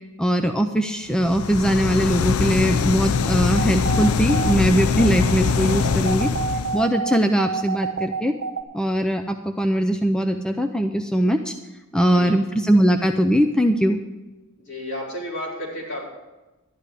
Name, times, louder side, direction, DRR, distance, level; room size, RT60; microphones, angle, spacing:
voice 1, 0.2-6.3 6.7-8.3 8.7-11.5 11.9-14.0, equal, 5° left, 6 dB, 0.5 m, -21 dB
sound 1, 1.2-6.9, left 6 dB, 90° left, 0.5 m, -23 dB
sound 2, 3.6-8.6, right 5 dB, 50° right, 1.3 m, -29 dB
voice 2, 11.9-12.4 14.6-16.0, equal, 60° left, -5 dB, 5.3 m, -32 dB
12.5 x 10.5 x 5.0 m, 1.1 s
head